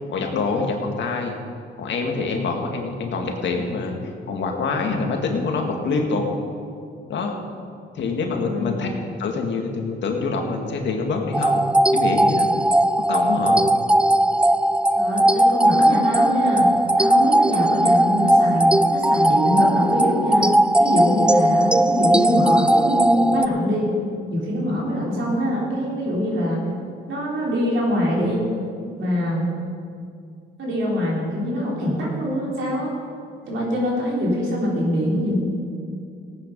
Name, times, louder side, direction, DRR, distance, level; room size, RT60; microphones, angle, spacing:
voice 1, 0.0-1.4 1.8-6.3 7.1-7.3 7.9-8.9 9.2-11.7 11.9-12.5 13.1-13.6 24.7-24.8, left 4 dB, 65° left, 2 dB, 2.0 m, -25 dB
voice 2, 8.4-8.8 14.9-24.0 24.3-26.6 27.1-28.4 29.0-29.5 30.6-32.9 33.4-35.3, equal, 75° right, -4 dB, 4.2 m, -24 dB
sound 1, 11.3-23.5, right 1 dB, 5° right, 0.3 m, -18 dB
17.0 x 9.1 x 5.4 m, 2.4 s
cardioid pair, 90°, 20 cm